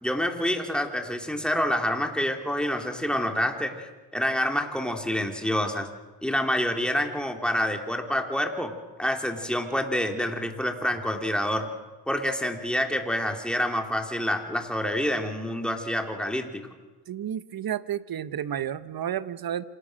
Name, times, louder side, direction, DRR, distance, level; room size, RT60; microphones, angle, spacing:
voice 1, 0.0-5.9 6.2-8.7 9.0-11.7 12.1-16.6, left 1 dB, ahead, 3 dB, 3.7 m, -27 dB
voice 2, 17.1-19.6, right 10 dB, 50° right, 14 dB, 1.1 m, -31 dB
27.0 x 19.0 x 6.5 m, 1.2 s
supercardioid pair, 70°, 46 cm